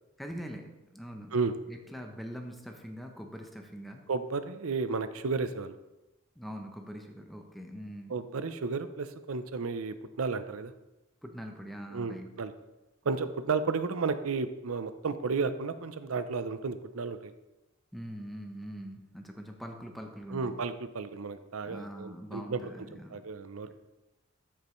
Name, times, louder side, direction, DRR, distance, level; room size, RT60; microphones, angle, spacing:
voice 1, 0.2-1.4 1.7-4.1 6.4-8.2 11.2-12.3 17.9-20.6 21.6-23.2, equal, ahead, 3 dB, 0.7 m, -43 dB
voice 2, 4.1-5.8 8.1-10.7 11.9-12.5 13.0-17.3 20.3-22.6 23.1-23.7, right 4 dB, 90° right, 11 dB, 0.6 m, -33 dB
13.0 x 5.4 x 3.1 m, 1.0 s
head